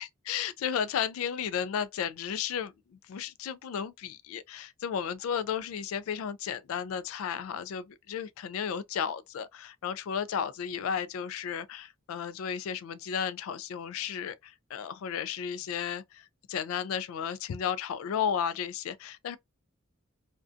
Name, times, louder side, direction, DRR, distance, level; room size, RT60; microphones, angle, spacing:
voice 1, 0.0-19.4, left 8 dB, 80° left, 0.3 m, -34 dB
2.4 x 2.2 x 2.3 m
head